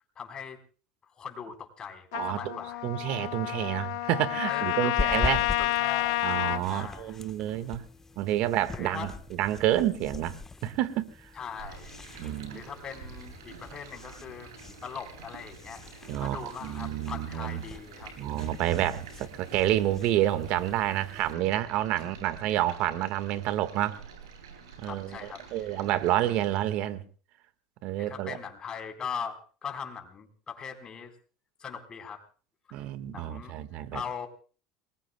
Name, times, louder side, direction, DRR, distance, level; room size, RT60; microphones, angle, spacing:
voice 1, 0.2-0.6 1.2-2.8 4.4-6.2 6.7-7.2 8.7-9.1 11.3-11.9 12.5-18.1 22.5-22.6 24.8-25.4 25.7-25.8 28.0-31.1 31.6-32.2 32.7-32.8 33.1-34.3, left 7 dB, 35° left, 5 dB, 4.2 m, -40 dB
Trumpet, 2.1-6.6, left 17 dB, 75° left, 0.9 m, -29 dB
voice 2, 2.1-2.6 2.8-5.4 6.2-7.9 8.2-11.3 12.2-12.6 16.1-17.6 18.2-24.0 24.8-27.0 27.8-28.4 32.7-34.0, right 13 dB, 60° right, 12 dB, 1.6 m, -29 dB
sound 1, 5.0-21.3, left 4 dB, 20° left, 1.2 m, -42 dB
Stream, 11.6-26.6, right 5 dB, 85° right, 7.8 m, -49 dB
29.5 x 21.0 x 2.3 m, 0.40 s
hypercardioid pair, 85°, 2 cm